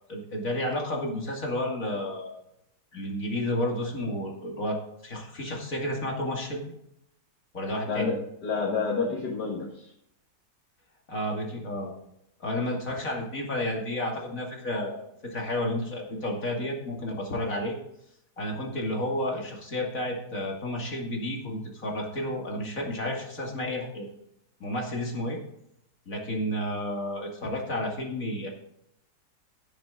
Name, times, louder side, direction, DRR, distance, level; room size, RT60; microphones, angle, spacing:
voice 1, 0.1-2.4 2.9-6.7 7.5-8.1 11.1-11.9 12.4-17.7 18.4-24.1 24.6-25.4 26.1-28.5, left 1 dB, 50° left, -1 dB, 2.8 m, -31 dB
voice 2, 7.9-9.9, left 4 dB, 70° left, -2 dB, 2.3 m, -29 dB
17.0 x 6.9 x 3.8 m, 0.77 s
omnidirectional pair, 1.9 m